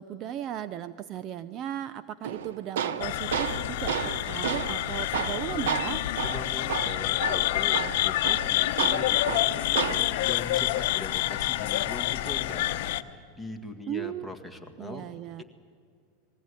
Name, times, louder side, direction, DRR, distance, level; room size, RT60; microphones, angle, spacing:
voice 1, 0.0-6.0 13.9-14.3 14.8-15.4, right 11 dB, 40° right, 14 dB, 0.5 m, -36 dB
Tools, 2.2-10.2, right 8 dB, 80° right, 0.8 m, -33 dB
sound 1, 3.0-13.0, left 15 dB, 65° left, 0.9 m, -28 dB
voice 2, 6.2-12.8 13.1-15.1 15.4-15.5, left 2 dB, 5° right, 7 dB, 1.8 m, -41 dB
20.5 x 15.5 x 9.7 m, 2.3 s
supercardioid pair, 130°, 0 cm